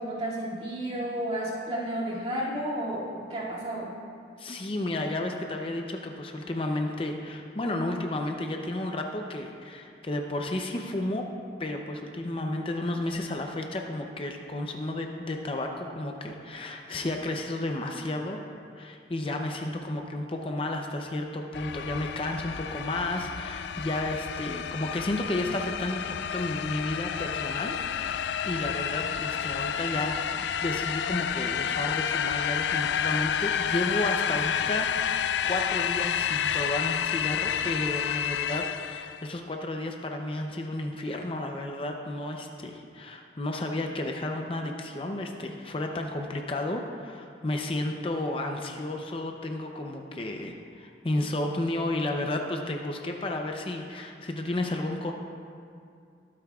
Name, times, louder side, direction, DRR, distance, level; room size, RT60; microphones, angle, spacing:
voice 1, 0.0-3.9 16.0-16.1, right 1 dB, 35° right, -7 dB, 2.3 m, -32 dB
voice 2, 4.4-11.3 11.6-18.4 18.8-55.1, left 1 dB, 30° left, 3 dB, 0.6 m, -32 dB
sound 1, 21.5-39.2, left 8 dB, 70° left, 0.3 m, -30 dB
22.0 x 8.5 x 2.4 m, 2.4 s
head